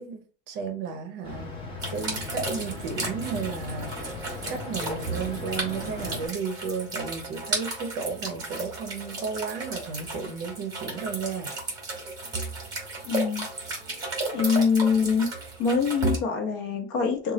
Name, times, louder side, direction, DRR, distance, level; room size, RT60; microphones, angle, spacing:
voice 1, 0.0-1.5 1.9-4.2 4.5-11.5, right 5 dB, 40° right, 0.6 m, -33 dB
sound 1, 1.2-6.3, left 3 dB, 15° left, 0.7 m, -37 dB
sound 2, 1.8-16.2, right 3 dB, 15° right, 1.1 m, -34 dB
voice 2, 13.1-13.5 14.3-15.3 15.6-17.3, left 5 dB, 60° left, 1.0 m, -24 dB
3.1 x 2.3 x 3.8 m
supercardioid pair, 170°, 30 cm